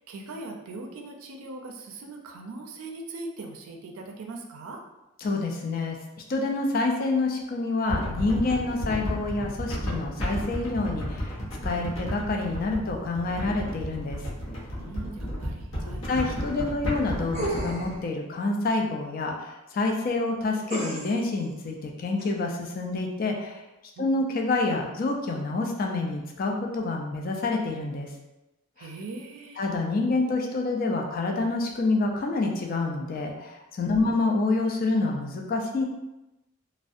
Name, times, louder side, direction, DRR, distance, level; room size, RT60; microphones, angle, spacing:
voice 1, 0.0-4.8 14.8-16.1 24.0-24.1 28.8-29.6 33.8-34.1, right 2 dB, 80° right, 2 dB, 0.4 m, -40 dB
voice 2, 5.2-6.0 6.3-14.2 16.1-23.6 24.0-28.1 28.8-28.9 29.6-35.8, left 3 dB, 40° left, 1 dB, 0.3 m, -27 dB
sound 1, 7.9-18.0, equal, 65° left, 0.7 m, -33 dB
sound 2, 17.3-18.0 20.7-21.3 22.2-22.3, right 2 dB, 35° right, 0.5 m, -32 dB
2.5 x 2.1 x 2.4 m, 0.96 s
head